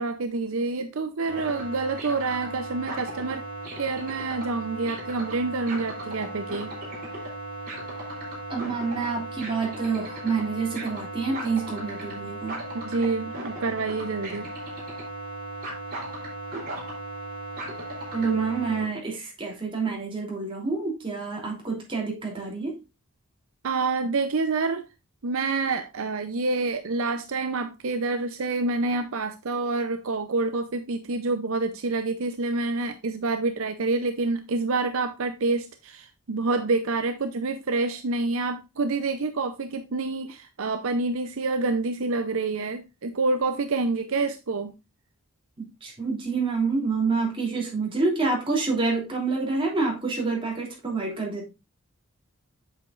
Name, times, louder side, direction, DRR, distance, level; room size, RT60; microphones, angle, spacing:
voice 1, 0.0-3.4 3.8-6.7 12.8-14.5 23.6-24.8 25.2-44.7, right 3 dB, 65° right, 0.6 m, -27 dB
sound 1, 1.3-18.8, right 1 dB, 40° right, 3.3 m, -36 dB
voice 2, 8.5-12.6 18.1-22.8 45.8-51.5, right 4 dB, 25° right, 3.0 m, -27 dB
8.1 x 6.9 x 2.5 m
head